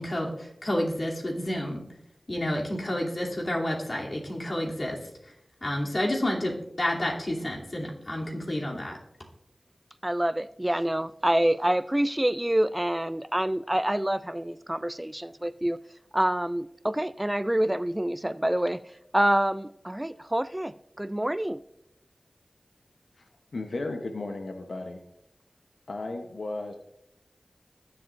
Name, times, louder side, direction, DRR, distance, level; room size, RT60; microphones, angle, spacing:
voice 1, 0.0-1.8 2.3-5.3 5.6-9.0, left 1 dB, 55° left, 2.9 m, -30 dB
voice 2, 10.0-15.8 16.1-18.8 19.1-21.6, right 1 dB, 15° right, 0.3 m, -27 dB
voice 3, 23.2-25.0 25.9-26.8, left 2 dB, 85° left, 0.8 m, -35 dB
20.5 x 7.6 x 2.6 m
cardioid pair, 40°, 0 cm